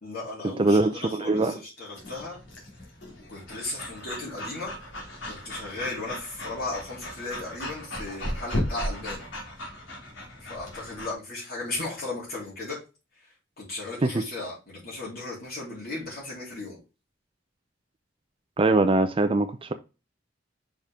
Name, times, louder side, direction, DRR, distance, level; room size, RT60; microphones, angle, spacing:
voice 1, 0.0-2.4 3.3-4.7 5.3-9.3 10.4-12.8 13.2-16.8, left 2 dB, 55° left, 3.5 m, -36 dB
voice 2, 0.6-1.6 14.0-14.2 18.6-19.7, right 2 dB, 30° right, 0.5 m, -22 dB
Breathing / Dog, 2.0-11.1, equal, 75° left, 2.8 m, -36 dB
5.7 x 5.4 x 3.6 m
head